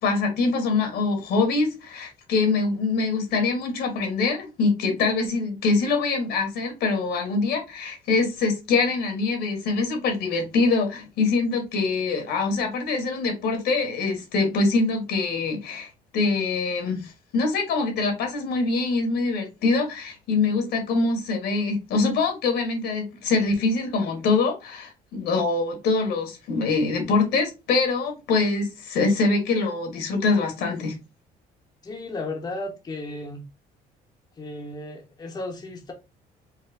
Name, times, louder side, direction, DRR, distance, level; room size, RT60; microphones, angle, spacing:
voice 1, 0.0-30.9, left 3 dB, 75° left, 1.8 m, -24 dB
voice 2, 31.8-33.5 34.4-35.9, left 2 dB, 25° left, 0.9 m, -34 dB
4.6 x 2.1 x 3.4 m
cardioid pair, 110°, 17 cm